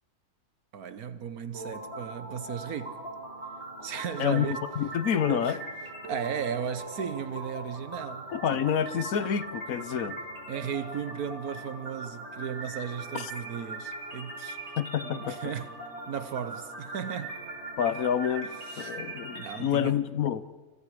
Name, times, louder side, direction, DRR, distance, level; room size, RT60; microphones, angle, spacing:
voice 1, 0.7-3.0 3.8-4.6 5.3-5.6 6.0-8.6 10.5-14.6 15.1-15.7 16.1-17.4 18.7-19.0 19.3-20.0, right 7 dB, 85° right, 1.7 m, -35 dB
sound 1, 1.5-19.5, right 2 dB, 45° right, 7.2 m, -40 dB
voice 2, 4.8-5.6 8.3-10.2 13.1-13.3 14.8-15.4 17.8-18.5 18.8-20.4, left 9 dB, 75° left, 1.3 m, -28 dB
30.0 x 28.0 x 5.0 m
omnidirectional pair, 1.5 m